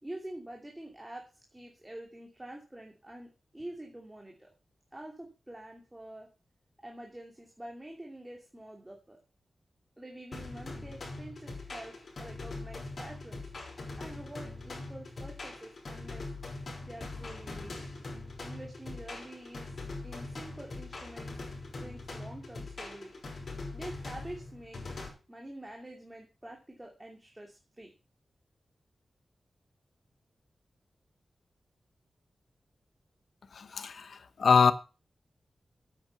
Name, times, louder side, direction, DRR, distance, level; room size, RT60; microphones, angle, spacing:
voice 1, 0.0-4.5 4.9-6.3 6.8-9.2 10.0-13.5 14.0-16.3 16.8-17.8 18.4-21.4 21.8-23.1 23.7-24.8 25.3-27.9, right 1 dB, 15° right, 2.7 m, -46 dB
sound 1, 10.3-25.1, left 3 dB, 60° left, 5.5 m, -42 dB
voice 2, 33.5-34.7, left 5 dB, 75° left, 1.0 m, -24 dB
9.0 x 8.8 x 5.8 m
cardioid pair, 70°, 0 cm